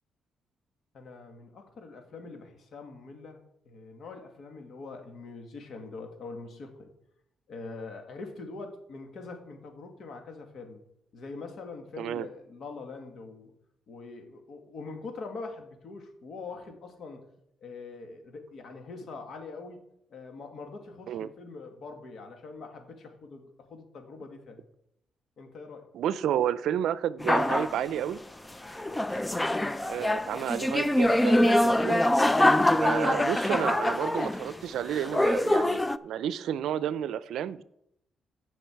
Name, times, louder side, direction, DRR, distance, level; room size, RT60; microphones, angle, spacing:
voice 1, 0.9-6.9 7.5-10.8 11.1-13.5 13.9-17.3 17.6-19.8 20.1-24.6 25.4-25.9 28.8-29.1, left 3 dB, 65° left, 5 dB, 2.0 m, -43 dB
voice 2, 25.9-28.2 28.7-28.8 29.9-32.0 32.8-37.6, right 10 dB, 80° right, 17 dB, 0.5 m, -31 dB
sound 1, 27.2-27.8 28.7-34.6 34.9-36.0, left 1 dB, 15° left, 0.4 m, -24 dB
15.0 x 5.9 x 4.6 m, 0.78 s
cardioid pair, 80°, 0 cm